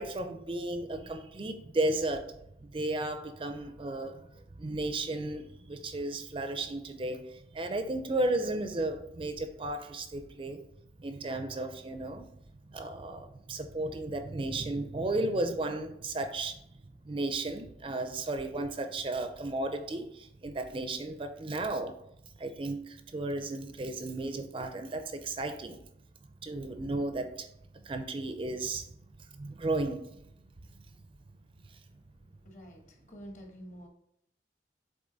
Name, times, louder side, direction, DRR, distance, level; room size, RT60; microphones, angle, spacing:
voice 1, 0.0-10.6 11.0-12.3 12.7-16.6 17.0-22.0 22.4-25.8 26.4-27.5 27.8-28.9 29.3-30.2 31.7-31.8, right 2 dB, 30° right, 7 dB, 0.4 m, -34 dB
voice 2, 32.4-33.9, equal, 45° left, 2 dB, 1.2 m, -48 dB
7.1 x 3.6 x 3.9 m, 0.73 s
head